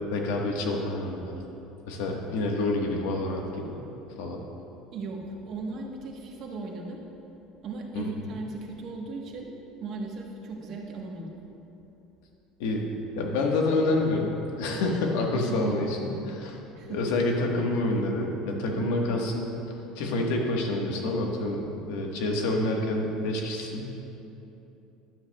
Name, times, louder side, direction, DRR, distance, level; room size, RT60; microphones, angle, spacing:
voice 1, 0.1-1.3 1.9-3.8 4.2-4.4 7.9-8.1 12.6-12.9 13.2-16.6 16.9-19.5 19.9-24.0, left 2 dB, 80° left, 1 dB, 1.4 m, -28 dB
voice 2, 4.9-7.0 7.6-11.4 15.5-15.9 16.8-17.0 18.7-18.9, right 3 dB, 40° right, -1 dB, 1.2 m, -37 dB
12.0 x 11.0 x 2.3 m, 3.0 s
cardioid pair, 175°, 0 cm